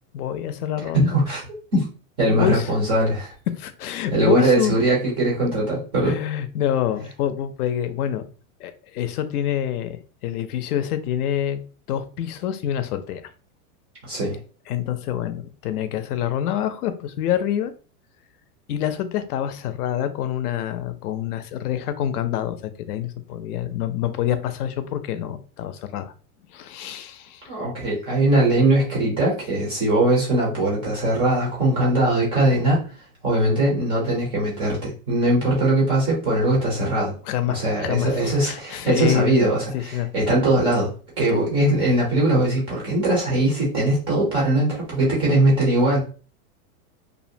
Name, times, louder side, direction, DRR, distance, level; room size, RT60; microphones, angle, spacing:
voice 1, 0.1-1.2 2.3-2.7 3.5-4.8 6.0-8.2 8.6-10.0 10.2-11.6 11.9-13.2 14.7-17.7 18.7-26.1 26.5-27.4 37.2-40.1 41.3-41.4, left 10 dB, 80° left, 0.6 m, -26 dB
voice 2, 0.9-1.4 1.7-1.9 2.2-3.3 4.1-6.2 14.0-14.4 27.5-32.8 33.2-37.2 37.5-40.9 41.2-46.0, right 1 dB, 15° right, 0.3 m, -20 dB
2.5 x 2.1 x 2.6 m
supercardioid pair, 145°, 44 cm